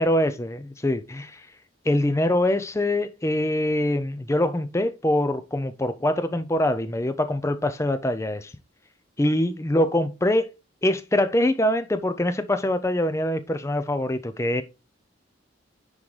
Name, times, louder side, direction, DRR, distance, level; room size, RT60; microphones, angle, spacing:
voice 1, 0.0-1.5 1.9-8.5 9.2-10.5 10.8-14.6, left 1 dB, 15° left, 0.4 m, -24 dB
9.7 x 3.7 x 3.2 m
head